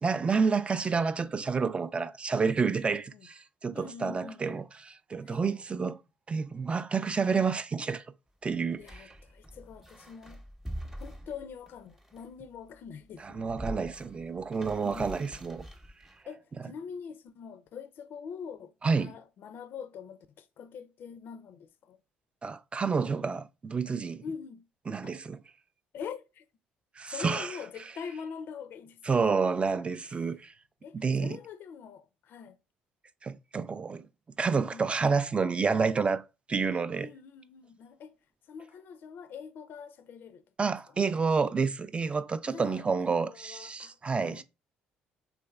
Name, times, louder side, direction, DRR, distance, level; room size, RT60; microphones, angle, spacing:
voice 1, 0.0-6.0 6.3-8.0 8.4-9.1 13.2-15.7 18.8-19.2 22.4-24.2 24.9-25.4 27.0-27.6 29.1-30.5 30.9-31.4 33.2-34.1 34.4-36.2 36.5-37.1 40.6-44.4, right 5 dB, 30° right, 0.3 m, -29 dB
voice 2, 2.7-3.3 3.7-4.7 5.2-5.4 8.8-10.4 11.0-13.5 14.7-15.4 16.3-22.0 24.2-24.6 25.0-25.1 25.9-26.4 27.1-29.3 30.0-30.3 30.8-32.6 34.7-34.9 37.0-38.1 38.5-40.4 40.9-41.0 42.5-42.8 43.1-44.4, left 6 dB, 60° left, 0.4 m, -44 dB
sound 1, 8.7-12.5 13.1-16.2, equal, 10° right, 0.7 m, -44 dB
3.2 x 3.1 x 2.3 m
hypercardioid pair, 60°, 4 cm